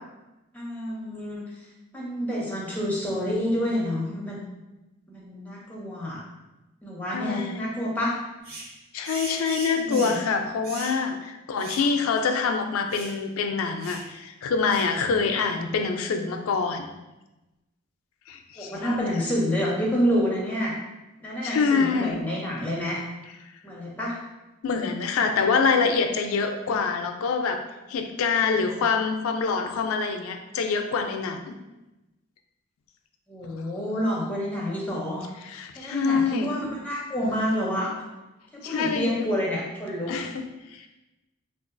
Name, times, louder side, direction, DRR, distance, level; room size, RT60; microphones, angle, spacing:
voice 1, 0.5-1.4 1.9-4.4 5.1-6.2 6.8-8.2 9.8-10.2 11.8-11.9 18.6-20.7 21.2-23.0 23.6-24.2 33.3-35.3 35.8-37.9 38.7-40.1, equal, 5° left, -5 dB, 0.5 m, -28 dB
voice 2, 7.1-7.7 8.9-16.9 18.3-19.1 21.4-22.2 24.6-27.6 27.9-31.5 35.4-36.5 38.6-39.3 40.1-40.9, left 5 dB, 85° left, 6 dB, 0.4 m, -26 dB
sound 1, 8.4-8.7 9.0-10.3 10.6-11.0 11.6-11.9 12.2-12.3 12.9-13.2 13.8-14.1 14.7-14.9, right 2 dB, 45° right, 0.6 m, -39 dB
3.7 x 2.3 x 2.5 m, 1.0 s
head